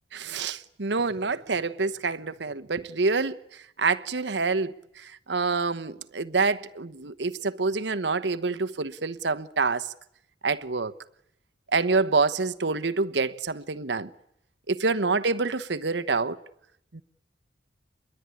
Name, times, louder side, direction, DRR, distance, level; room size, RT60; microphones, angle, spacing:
voice 1, 0.1-3.4 3.8-4.7 5.3-9.9 10.4-10.9 11.7-14.1 14.7-16.4 16.9-17.0, right 4 dB, 85° right, 1.1 m, -26 dB
27.5 x 22.0 x 9.8 m
head